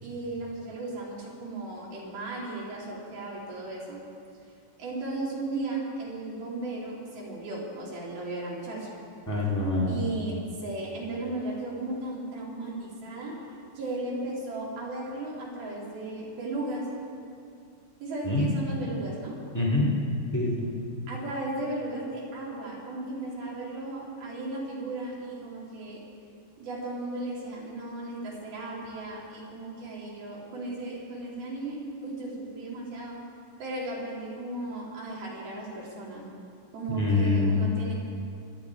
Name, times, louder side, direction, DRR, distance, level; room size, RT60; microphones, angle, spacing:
voice 1, 0.0-4.0 4.8-8.9 9.9-13.4 13.8-16.8 18.0-19.3 21.1-26.0 26.6-31.8 32.0-33.2 33.6-36.3 36.7-37.9, right 2 dB, 60° right, -5 dB, 4.4 m, -35 dB
voice 2, 9.3-10.0 18.2-18.4 19.5-19.9 20.3-20.7 36.9-37.6, left 2 dB, 15° left, -6 dB, 0.6 m, -25 dB
26.0 x 9.8 x 4.7 m, 2.4 s
omnidirectional pair, 5.1 m